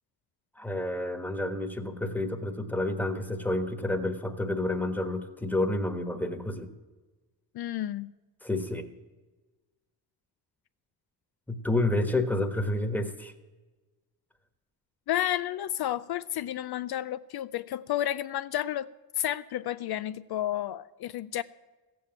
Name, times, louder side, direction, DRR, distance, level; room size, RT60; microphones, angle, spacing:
voice 1, 0.6-6.7 8.4-8.9 11.5-13.3, left 2 dB, 5° left, 6 dB, 1.3 m, -29 dB
voice 2, 7.5-8.1 15.1-18.9 19.2-21.4, left 12 dB, 70° left, 14 dB, 0.5 m, -31 dB
15.5 x 7.8 x 8.7 m, 1.2 s
wide cardioid pair, 125°, 40 cm